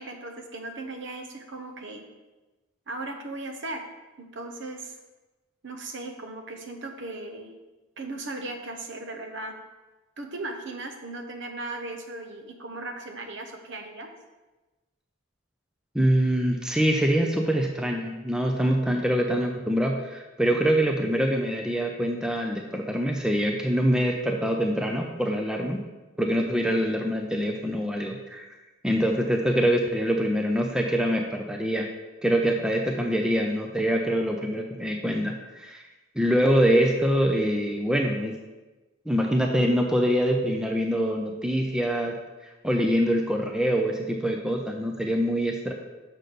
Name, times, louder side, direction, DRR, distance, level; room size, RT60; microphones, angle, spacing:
voice 1, 0.0-2.0 2.9-3.8 4.2-4.9 5.6-7.5 8.0-9.6 10.2-14.1, right 2 dB, 55° right, 4 dB, 0.9 m, -37 dB
voice 2, 15.9-25.8 26.2-28.5 28.8-31.9 32.2-35.8 36.2-38.4 39.1-42.2 42.6-45.7, equal, 5° right, 2 dB, 0.5 m, -24 dB
6.4 x 4.2 x 6.4 m, 1.1 s
head